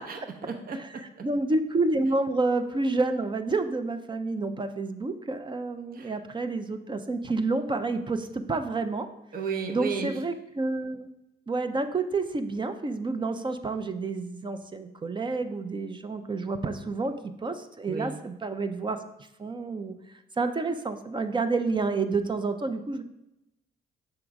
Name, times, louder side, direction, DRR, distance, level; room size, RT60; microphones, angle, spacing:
voice 1, 0.0-1.3 5.9-6.1 9.3-10.2 17.9-18.2, right 5 dB, 45° right, 5 dB, 0.8 m, -34 dB
voice 2, 0.7-9.1 9.7-11.1 11.5-19.0 19.4-20.0 20.4-23.0, right 3 dB, 25° right, 9 dB, 0.5 m, -29 dB
6.2 x 3.7 x 4.6 m, 0.90 s
cardioid pair, 90°, 20 cm